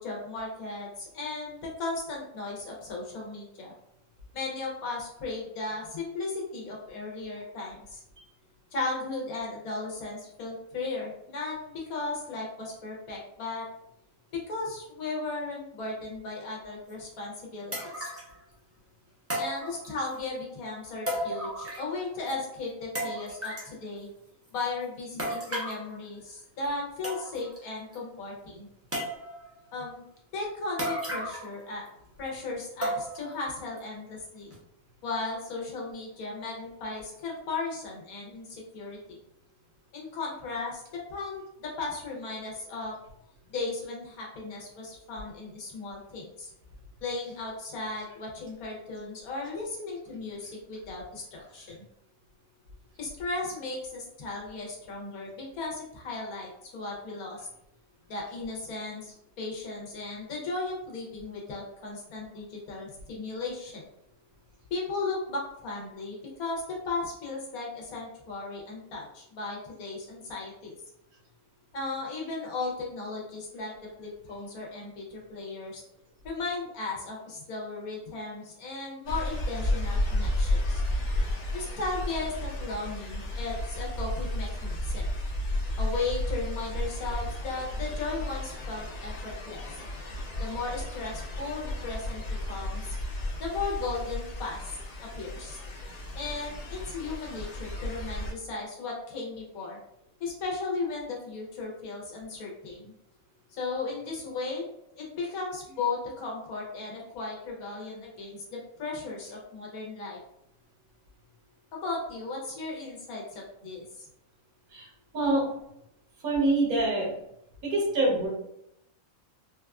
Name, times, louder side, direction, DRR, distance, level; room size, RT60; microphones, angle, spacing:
voice 1, 0.0-3.7 4.3-8.0 8.7-13.7 14.3-18.1 19.4-24.1 24.5-28.7 29.7-30.0 30.3-31.8 32.2-34.5 35.0-39.2 39.9-43.0 43.5-46.5 47.0-51.8 53.0-57.5 58.1-63.8 64.7-70.7 71.7-73.7 74.0-75.8 76.2-80.8 81.5-85.1 85.8-89.6 90.4-93.0 93.4-95.6 96.1-99.8 100.2-102.9 103.5-104.7 105.0-110.2 111.7-114.0, left 3 dB, 80° left, -2 dB, 1.3 m, -36 dB
sound 1, 16.9-17.0 17.7-18.3 19.3-20.2 21.1-22.0 22.3-22.4 23.0-23.7 25.2-25.8 26.6-26.7 27.0-27.6 27.9-28.0 28.9-29.5 30.8-31.6 31.9-32.0 32.8-33.3 33.8-33.9 34.5-34.6, right 1 dB, 20° right, 0.3 m, -34 dB
sound 2, 79.0-98.3, left 1 dB, 65° left, 0.4 m, -33 dB
voice 2, 115.1-115.5 116.2-117.1 117.6-118.3, right 2 dB, 80° right, -3 dB, 1.5 m, -25 dB
3.8 x 2.3 x 2.3 m, 0.79 s
omnidirectional pair, 1.5 m